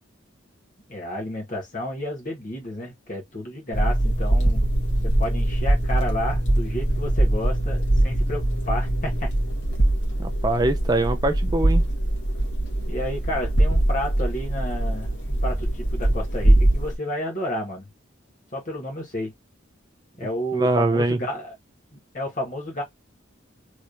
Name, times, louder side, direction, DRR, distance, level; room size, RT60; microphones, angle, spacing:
voice 1, 0.9-4.7 5.0-9.3 12.8-17.9 18.5-19.3 20.2-21.5 21.9-22.8, equal, 40° left, 1.6 m, -31 dB
sound 1, 3.7-17.0, right 1 dB, 60° left, 1.4 m, -22 dB
voice 2, 10.2-11.8 20.5-21.2, right 2 dB, 20° right, 0.3 m, -22 dB
3.2 x 2.9 x 2.6 m
head